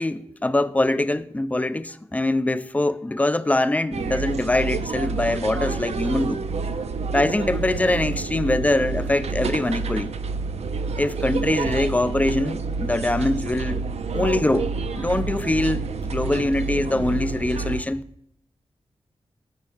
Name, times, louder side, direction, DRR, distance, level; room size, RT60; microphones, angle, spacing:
voice 1, 0.0-6.4 7.1-10.1 10.9-13.8 14.1-14.7 14.9-18.0, left 2 dB, 15° left, 0.3 m, -23 dB
sound 1, 3.9-17.8, right 4 dB, 75° right, 0.5 m, -28 dB
7.1 x 5.6 x 6.4 m
wide cardioid pair, 90°, 11 cm